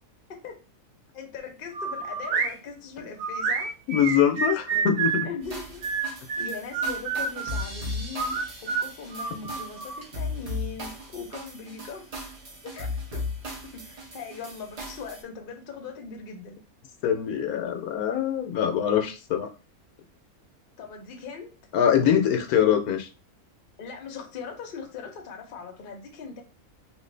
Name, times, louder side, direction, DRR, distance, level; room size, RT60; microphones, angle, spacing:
voice 1, 1.1-3.7 4.7-4.9 5.2-5.8 6.4-12.3 12.6-13.3 13.6-16.6 20.8-21.6 23.8-26.4, left 5 dB, 50° left, 0.7 m, -40 dB
sound 1, 1.7-2.5 3.2-5.3 5.8-7.6 8.2-10.0, right 5 dB, 80° right, 1.2 m, -28 dB
voice 2, 3.9-5.3 17.0-19.5 21.7-23.1, left 9 dB, 80° left, 1.0 m, -23 dB
sound 2, 5.4-15.2, left 2 dB, 45° right, 0.5 m, -37 dB
3.0 x 2.5 x 3.2 m
omnidirectional pair, 1.6 m